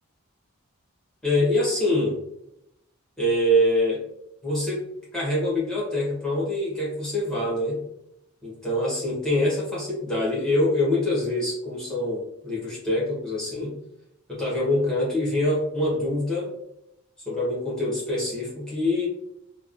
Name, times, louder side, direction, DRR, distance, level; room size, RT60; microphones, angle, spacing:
voice 1, 1.2-2.2 3.2-4.0 4.4-4.8 5.1-7.8 8.4-13.7 14.3-16.5 17.3-19.1, left 1 dB, 5° left, -8 dB, 1.0 m, -25 dB
3.2 x 2.1 x 2.5 m, 0.80 s
head